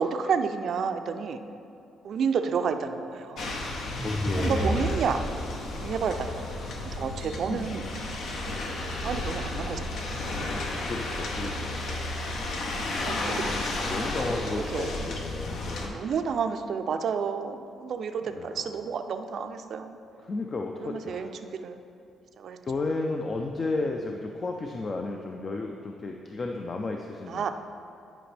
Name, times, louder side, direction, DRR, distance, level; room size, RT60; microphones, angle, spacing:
voice 1, 0.0-1.4 2.0-3.5 4.4-5.2 5.7-6.5 6.9-7.8 9.0-10.1 13.0-13.5 14.7-15.0 15.9-20.0 20.9-21.8 22.4-22.6 27.3-27.5, right 6 dB, 60° right, 8 dB, 0.4 m, -30 dB
sound 1, 3.4-15.9, left 2 dB, 70° left, 0.9 m, -33 dB
sound 2, 3.9-5.8, right 1 dB, 5° left, 0.8 m, -31 dB
voice 2, 4.0-4.9 7.5-7.7 10.8-12.0 13.1-16.0 18.2-18.8 20.2-21.3 22.6-27.5, left 3 dB, 35° left, 2 dB, 0.5 m, -33 dB
10.5 x 5.1 x 3.3 m, 2.6 s
cardioid pair, 90°, 0 cm